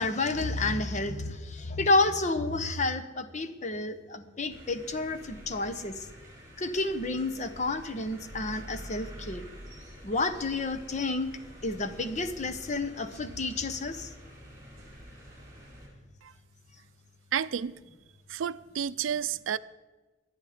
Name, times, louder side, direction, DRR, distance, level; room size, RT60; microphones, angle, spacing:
voice 1, 0.0-6.1 6.6-9.5 10.0-11.3 11.6-14.1, left 2 dB, 40° left, 0.9 m, -30 dB
sound 1, 4.5-15.9, equal, 15° right, 4.2 m, -48 dB
voice 2, 17.3-17.7 18.3-19.6, right 8 dB, 85° right, 0.4 m, -31 dB
23.5 x 9.1 x 5.0 m
head